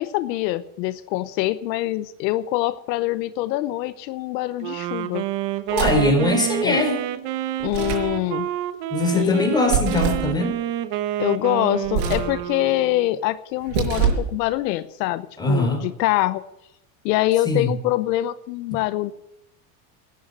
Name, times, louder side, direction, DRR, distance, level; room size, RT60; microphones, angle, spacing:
voice 1, 0.0-5.2 6.6-6.8 7.6-8.5 9.1-9.5 11.2-16.4 17.0-19.1, left 16 dB, 80° left, 14 dB, 0.9 m, -24 dB
Wind instrument woodwind instrument, 4.6-13.2, right 12 dB, 55° right, 1.3 m, -29 dB
voice 2, 5.7-7.0 8.9-10.6 15.4-15.8 17.5-17.7, left 2 dB, 10° left, 3 dB, 4.5 m, -21 dB
sound 1, 5.7-6.2 7.6-8.1 9.7-10.3 11.8-12.4 13.6-14.3, right 7 dB, 70° right, 5.8 m, -24 dB
12.5 x 9.4 x 8.1 m, 0.85 s
supercardioid pair, 125°, 49 cm